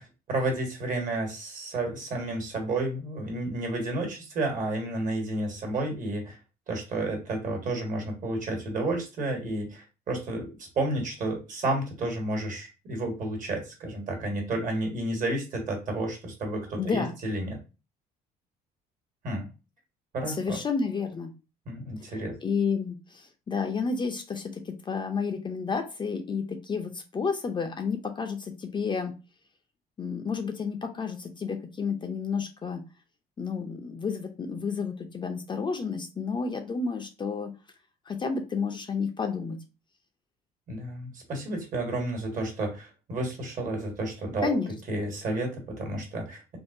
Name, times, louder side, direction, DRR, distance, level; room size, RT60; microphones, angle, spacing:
voice 1, 0.0-6.4 6.7-10.5 10.7-17.6 19.2-19.5 20.1-20.6 21.6-22.3 40.7-44.6 44.9-46.6, right 2 dB, 50° right, 2 dB, 1.3 m, -31 dB
voice 2, 16.8-17.1 20.3-21.3 22.4-29.1 30.0-32.8 33.4-37.5 38.1-39.6 44.4-44.7, left 5 dB, 25° left, 5 dB, 0.5 m, -31 dB
3.5 x 2.1 x 2.5 m, 0.30 s
cardioid pair, 110°, 17 cm